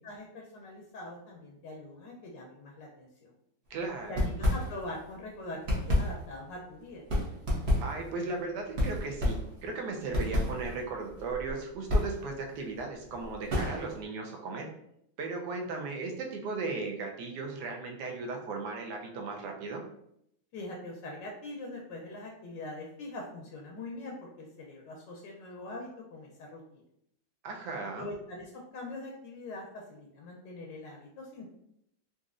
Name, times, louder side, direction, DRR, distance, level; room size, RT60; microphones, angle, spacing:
voice 1, 0.0-3.3 4.1-7.0 20.5-26.8 28.0-31.5, left 2 dB, 75° left, -1 dB, 1.2 m, -43 dB
voice 2, 3.7-4.3 7.8-14.7 15.2-19.8 27.4-28.1, right 3 dB, 70° right, 1 dB, 1.1 m, -36 dB
sound 1, 4.0-5.1 5.4-14.1, left 1 dB, 45° right, 0.9 m, -31 dB
4.0 x 2.4 x 2.4 m, 0.75 s
omnidirectional pair, 2.1 m